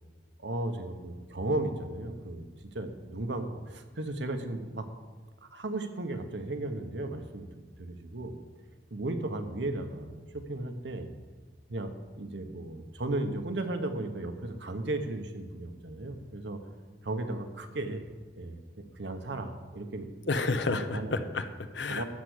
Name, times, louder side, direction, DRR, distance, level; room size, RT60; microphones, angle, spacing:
voice 1, 0.4-2.5 2.7-4.9 5.4-7.5 7.8-8.4 8.9-11.1 11.7-16.6 17.0-18.1 18.4-20.3 20.7-21.2 21.9-22.0, right 2 dB, 80° right, 6 dB, 1.1 m, -35 dB
voice 2, 20.3-22.0, left 3 dB, 85° left, 9 dB, 0.8 m, -30 dB
12.5 x 4.7 x 8.2 m, 1.3 s
head